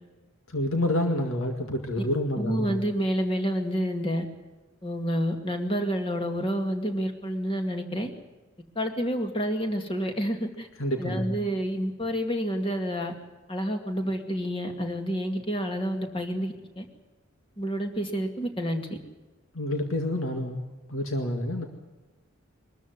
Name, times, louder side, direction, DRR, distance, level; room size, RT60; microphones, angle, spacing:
voice 1, 0.5-2.8 10.8-11.4 19.5-20.6 20.9-21.6, left 1 dB, 80° left, 4 dB, 2.0 m, -28 dB
voice 2, 2.4-4.3 4.8-8.1 8.8-10.7 11.0-13.1 13.5-16.8 17.6-18.9, equal, 25° left, 4 dB, 2.3 m, -29 dB
23.0 x 13.5 x 9.5 m, 1.2 s
head